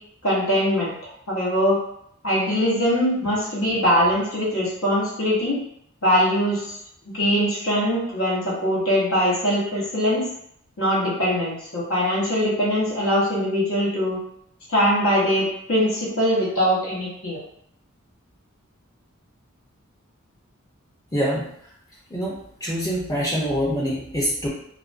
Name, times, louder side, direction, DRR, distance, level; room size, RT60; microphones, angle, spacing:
voice 1, 0.2-0.9 1.3-1.8 2.2-5.6 6.0-6.6 7.1-10.2 10.8-14.2 14.7-17.4, equal, 80° left, -6 dB, 0.9 m, -22 dB
voice 2, 21.1-21.5 22.1-24.5, equal, 15° left, -5 dB, 0.5 m, -25 dB
2.4 x 2.1 x 2.4 m, 0.70 s
head